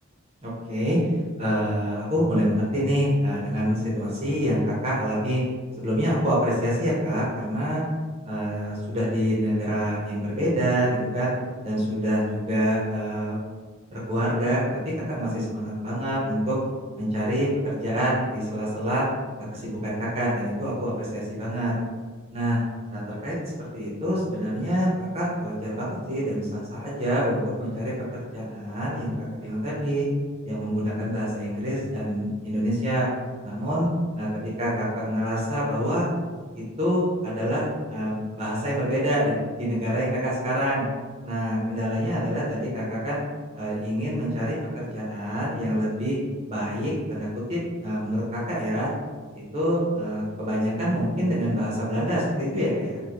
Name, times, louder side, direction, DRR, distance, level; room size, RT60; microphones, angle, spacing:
voice 1, 0.4-1.0 1.4-5.4 5.8-7.8 8.2-11.3 11.6-13.4 13.9-14.6 15.1-16.6 17.0-19.0 19.5-21.7 22.3-22.6 22.9-23.4 23.7-27.9 28.3-30.0 30.4-33.1 33.4-33.9 34.2-34.3 34.6-36.0 36.8-40.8 41.2-43.2 43.5-46.2 46.5-48.9 49.3-53.0, equal, 25° right, -7 dB, 0.7 m, -26 dB
2.6 x 2.5 x 2.9 m, 1.4 s
head